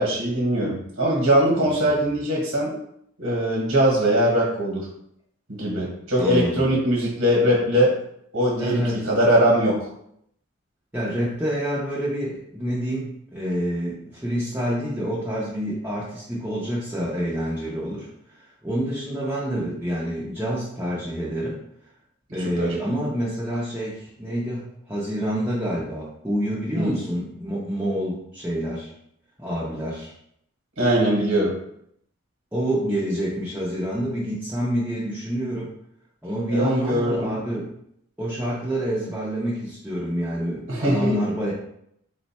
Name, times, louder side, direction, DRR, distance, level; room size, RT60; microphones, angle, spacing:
voice 1, 0.0-2.8 3.2-4.9 5.5-7.9 8.3-9.9 22.6-22.8 26.8-27.0 30.8-31.5 36.5-37.3 40.7-41.1, right 1 dB, 65° right, -3 dB, 1.1 m, -21 dB
voice 2, 1.5-1.9 6.1-6.7 8.6-9.1 10.9-18.1 18.6-21.6 22.3-28.9 29.4-30.1 32.5-35.7 36.2-37.7 38.2-41.5, equal, 10° right, -8 dB, 0.6 m, -27 dB
3.8 x 2.2 x 4.1 m, 0.72 s
head